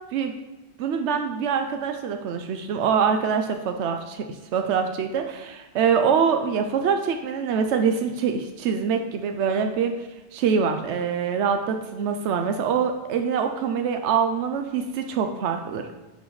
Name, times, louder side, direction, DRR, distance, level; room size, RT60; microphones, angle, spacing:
voice 1, 0.8-4.3 4.5-10.0 10.3-15.9, right 6 dB, 85° right, 6 dB, 0.9 m, -24 dB
11.0 x 6.2 x 3.2 m, 1.1 s
omnidirectional pair, 1.2 m